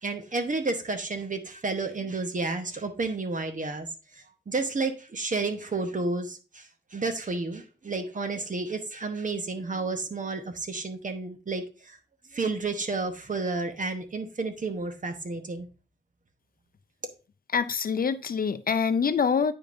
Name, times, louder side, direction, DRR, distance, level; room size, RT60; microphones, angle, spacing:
voice 1, 0.0-3.9 4.1-12.0 12.3-15.7, right 3 dB, 45° right, 0.9 m, -31 dB
voice 2, 17.5-19.5, left 6 dB, 55° left, 0.4 m, -25 dB
8.9 x 5.1 x 2.5 m
wide cardioid pair, 130°, 19 cm